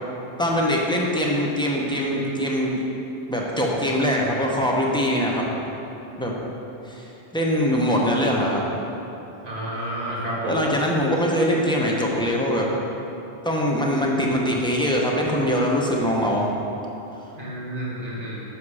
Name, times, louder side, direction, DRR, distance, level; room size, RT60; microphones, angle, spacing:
voice 1, 0.4-2.8 3.3-5.4 6.2-6.3 6.8-8.6 10.4-12.7 13.4-16.5, equal, 5° left, -2 dB, 0.7 m, -22 dB
voice 2, 9.4-10.6 17.3-18.4, right 1 dB, 35° right, -7 dB, 1.8 m, -30 dB
7.5 x 5.6 x 4.9 m, 3.0 s
omnidirectional pair, 1.2 m